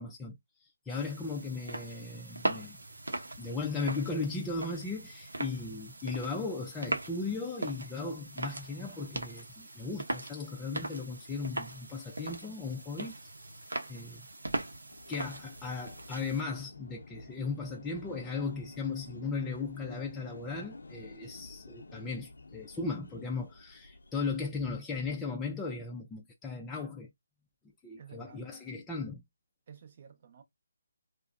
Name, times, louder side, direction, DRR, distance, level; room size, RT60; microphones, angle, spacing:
voice 1, 0.0-2.8 3.4-13.3 13.9-14.3 15.1-27.1 27.8-29.2, left 4 dB, 10° left, 0.4 m, -37 dB
sound 1, 0.9-16.4, right 2 dB, 90° right, 0.6 m, -40 dB
sound 2, 14.9-24.4, left 2 dB, 80° left, 0.5 m, -50 dB
voice 2, 28.0-28.5 29.7-30.4, right 7 dB, 45° right, 0.7 m, -52 dB
2.6 x 2.0 x 2.4 m
figure-of-eight pair, 155°, 0 cm